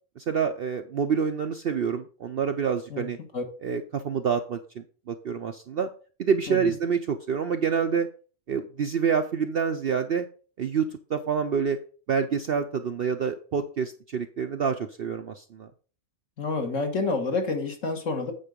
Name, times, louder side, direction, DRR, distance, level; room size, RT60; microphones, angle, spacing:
voice 1, 0.2-3.2 3.6-5.9 6.2-8.1 8.5-10.3 10.6-11.8 12.1-15.7, right 6 dB, 60° right, 7 dB, 0.7 m, -27 dB
voice 2, 16.4-18.3, left 3 dB, 60° left, 4 dB, 1.8 m, -28 dB
8.9 x 4.7 x 5.1 m, 0.39 s
omnidirectional pair, 1.5 m